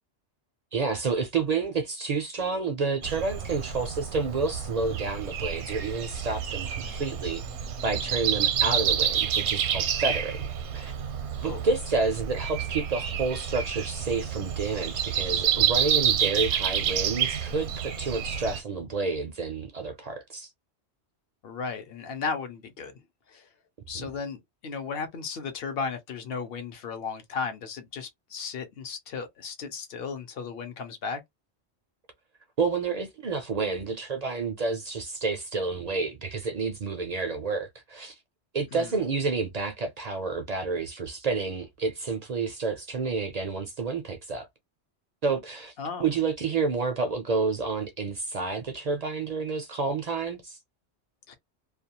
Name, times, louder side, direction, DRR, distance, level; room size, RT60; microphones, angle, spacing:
voice 1, 0.7-7.4 7.8-10.9 11.4-20.5 23.9-24.1 32.6-38.2 38.5-44.5 45.2-45.7 46.0-50.6, right 4 dB, 60° right, 0.4 m, -29 dB
Breathing, 3.0-18.6, right 8 dB, 80° right, 0.9 m, -29 dB
voice 2, 21.4-22.9 23.3-23.5 23.9-31.2 38.7-39.0 45.8-46.0 51.3-51.4, left 5 dB, 65° left, 0.8 m, -35 dB
2.4 x 2.2 x 2.8 m
omnidirectional pair, 1.1 m